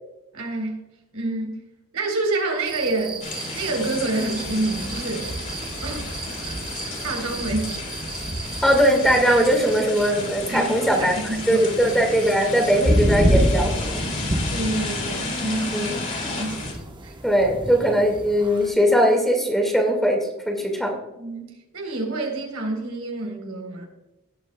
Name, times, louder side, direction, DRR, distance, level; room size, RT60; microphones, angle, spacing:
voice 1, 0.3-1.6 1.9-3.3 3.5-5.3 5.8-7.8 10.5-11.9 14.5-16.6 17.0-17.2 21.2-23.9, right 2 dB, 75° right, 1 dB, 3.8 m, -28 dB
sound 1, 2.7-18.7, right 1 dB, 20° right, 1.0 m, -29 dB
sound 2, 3.2-16.7, left 2 dB, 35° left, 3.2 m, -32 dB
voice 2, 8.6-11.1 11.5-14.0 15.7-16.0 17.2-21.0, equal, ahead, 1 dB, 1.9 m, -20 dB
18.0 x 8.9 x 2.3 m, 0.97 s
head